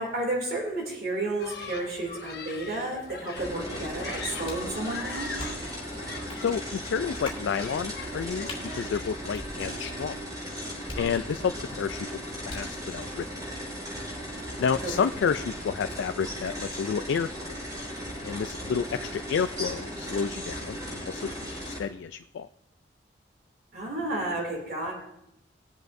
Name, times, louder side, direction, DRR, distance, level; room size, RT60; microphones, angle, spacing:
voice 1, 0.0-5.4 14.8-14.9 23.7-24.9, right 2 dB, 50° right, -1 dB, 2.7 m, -32 dB
Human group actions, 1.4-9.1, left 4 dB, 55° left, 1.0 m, -41 dB
sound 1, 3.3-21.8, equal, 20° right, 4.9 m, -37 dB
sound 2, 4.5-4.7 5.4-5.8 6.3-6.4 7.2-7.5 8.5-8.7 9.3-10.0 10.9-11.6 12.5-12.8, left 2 dB, 25° left, 2.6 m, -41 dB
voice 2, 6.4-8.5 8.7-10.2 11.0-12.1 12.5-13.3 14.6-17.6 18.2-22.5, left 6 dB, 80° left, 10 dB, 0.3 m, -30 dB
20.5 x 7.7 x 2.6 m, 0.81 s
head